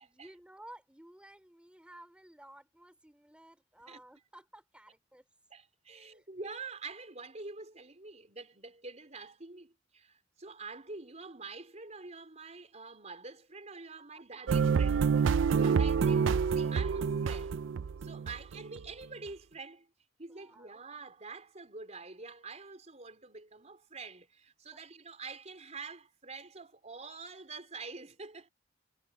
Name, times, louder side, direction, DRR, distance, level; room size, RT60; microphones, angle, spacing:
voice 1, 0.0-5.3 5.9-6.3 14.1-14.2 18.2-18.5 20.3-20.8 24.7-24.8, right 1 dB, 5° right, 3.2 m, -55 dB
voice 2, 5.5-17.6 18.0-19.9 20.2-28.5, right 4 dB, 40° right, 4.1 m, -46 dB
sound 1, 14.5-18.9, right 6 dB, 90° right, 0.4 m, -28 dB
head